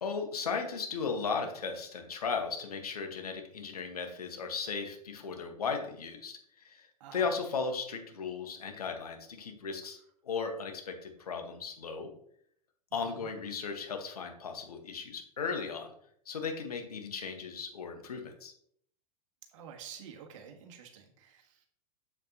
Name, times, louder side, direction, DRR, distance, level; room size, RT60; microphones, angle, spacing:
voice 1, 0.0-6.4 6.6-6.9 7.1-10.0 10.2-12.1 12.9-15.9 16.3-18.5, left 5 dB, 75° left, 5 dB, 1.5 m, -36 dB
voice 2, 7.0-7.3 12.9-13.3 19.5-21.7, right 7 dB, 55° right, 4 dB, 1.5 m, -49 dB
7.5 x 7.2 x 2.9 m, 0.67 s
figure-of-eight pair, 95°, 20 cm